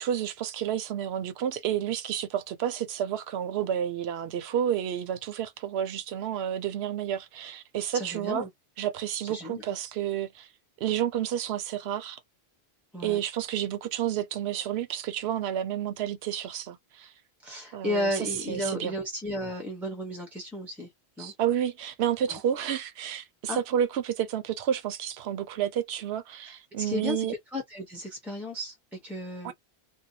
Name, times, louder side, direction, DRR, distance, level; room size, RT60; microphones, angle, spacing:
voice 1, 0.0-8.4 8.8-10.5 10.8-12.2 13.0-17.1 17.7-18.9 21.2-27.3 29.4-29.5, right 10 dB, 75° right, 0.8 m, -30 dB
voice 2, 7.9-8.5 9.3-9.6 12.9-13.2 17.4-20.9 21.2-21.3 22.3-22.4 23.5-23.6 26.8-29.5, left 1 dB, ahead, 0.5 m, -33 dB
2.6 x 2.1 x 2.7 m
omnidirectional pair, 1.1 m